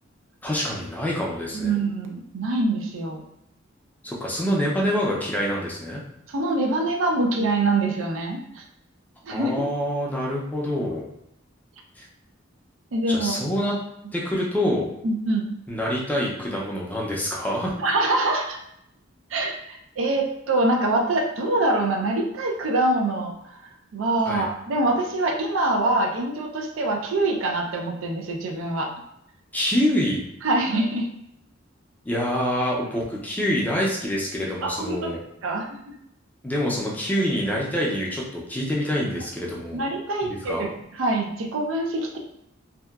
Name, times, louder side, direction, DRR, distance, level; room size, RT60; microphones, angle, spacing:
voice 1, 0.4-1.8 4.0-6.0 9.3-11.0 12.0-12.1 13.1-13.8 14.1-14.9 15.7-17.7 24.3-24.5 29.5-30.2 32.1-35.2 36.4-39.8 40.3-40.7, equal, 10° left, -4 dB, 0.4 m, -26 dB
voice 2, 1.5-3.2 6.3-8.6 9.2-9.5 12.9-13.3 15.0-15.5 17.8-18.6 19.3-23.3 23.9-28.9 30.4-31.1 34.6-35.1 35.4-35.8 39.7-40.7 40.9-42.2, right 2 dB, 75° right, 1 dB, 0.4 m, -24 dB
2.7 x 2.2 x 2.2 m, 0.77 s
head